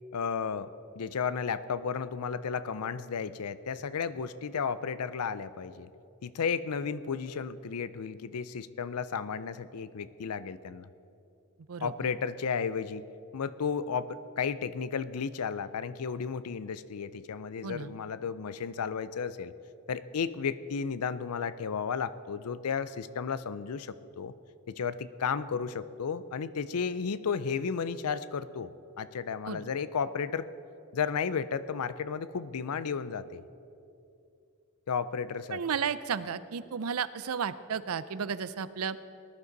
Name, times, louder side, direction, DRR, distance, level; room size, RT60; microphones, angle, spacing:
voice 1, 0.1-0.7 1.0-5.9 6.2-10.9 11.8-13.1 13.3-19.5 19.9-24.3 24.7-28.7 29.0-30.5 30.9-33.4 34.9-35.6, left 6 dB, 90° left, 15 dB, 0.5 m, -33 dB
voice 2, 35.5-39.0, right 6 dB, 75° right, 15 dB, 0.5 m, -33 dB
19.0 x 11.5 x 4.0 m, 2.6 s
head